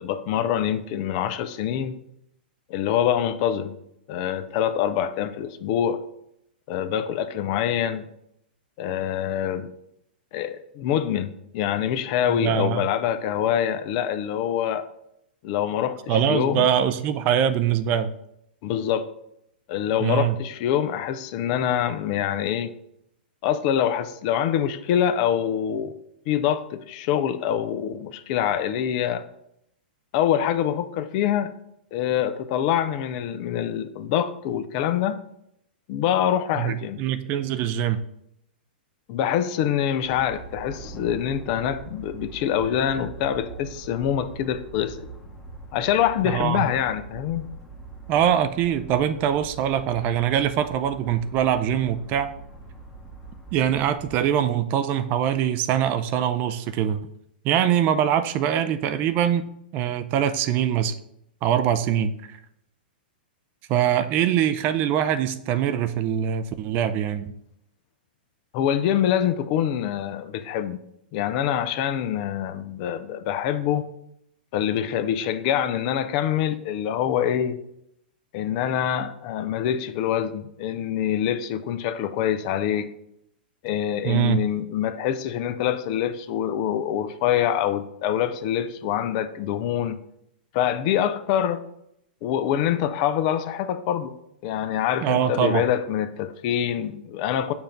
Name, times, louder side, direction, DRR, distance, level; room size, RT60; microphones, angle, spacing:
voice 1, 0.0-2.0 2.7-3.8 4.1-6.0 6.7-8.1 8.8-9.7 10.3-14.9 15.4-16.7 18.6-19.1 19.7-22.7 23.4-26.0 26.3-29.2 30.1-31.5 31.9-35.2 35.9-37.0 39.1-45.1 45.7-47.4 68.5-70.8 71.1-73.8 74.5-77.6 78.3-82.9 83.6-90.0 90.5-91.6 92.2-94.1 94.4-97.5, left 10 dB, 45° left, 0.5 m, -25 dB
voice 2, 12.4-12.8 16.1-18.1 20.0-20.3 36.6-38.0 46.2-46.6 48.1-52.3 53.5-57.0 57.4-60.9 61.4-62.1 63.7-67.3 84.0-84.4 95.0-95.6, right 9 dB, 35° right, 0.4 m, -23 dB
sound 1, 40.0-54.3, right 3 dB, 10° left, 1.0 m, -42 dB
7.0 x 2.6 x 5.7 m
hypercardioid pair, 120°, 5 cm